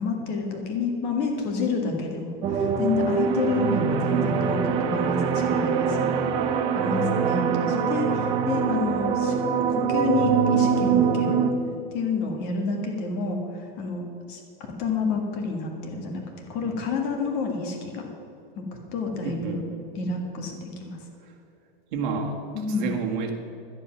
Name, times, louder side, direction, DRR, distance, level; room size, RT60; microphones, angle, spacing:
voice 1, 0.0-6.5 6.8-9.4 9.7-11.4 11.9-14.4 14.8-16.2 16.5-18.1 18.6-18.7 18.9-19.6 19.9-21.0 22.5-22.9, left 4 dB, 35° left, 2 dB, 1.8 m, -29 dB
sound 1, 2.4-11.5, right 6 dB, 15° right, 0.5 m, -24 dB
voice 2, 6.2-6.5 16.6-16.7 19.2-19.8 21.2-21.3 21.9-23.3, right 5 dB, 55° right, 3 dB, 1.7 m, -31 dB
12.0 x 9.9 x 5.9 m, 2.8 s
supercardioid pair, 175°, 30 cm